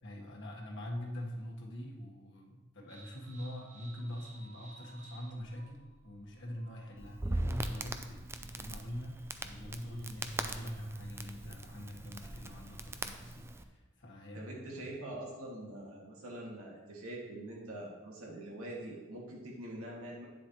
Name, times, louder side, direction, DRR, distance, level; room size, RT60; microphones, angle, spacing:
voice 1, 0.0-15.2, equal, 55° left, -1 dB, 1.5 m, -44 dB
sound 1, 2.9-13.5, right 1 dB, 35° right, 1.0 m, -53 dB
Crackle, 7.0-13.6, right 2 dB, 10° right, 0.3 m, -40 dB
voice 2, 14.3-20.3, right 1 dB, 75° right, -3 dB, 2.1 m, -44 dB
9.7 x 7.3 x 3.1 m, 1.2 s
head